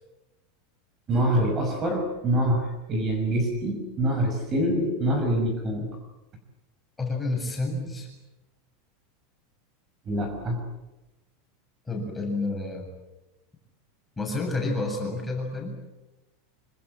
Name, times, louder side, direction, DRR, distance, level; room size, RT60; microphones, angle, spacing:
voice 1, 1.1-5.9 10.1-10.6, right 1 dB, 20° right, 4 dB, 5.6 m, -25 dB
voice 2, 7.0-8.1 11.9-12.9 14.2-15.7, left 2 dB, 5° left, 1 dB, 7.5 m, -29 dB
27.0 x 26.5 x 7.7 m, 1.0 s
supercardioid pair, 175°, 0 cm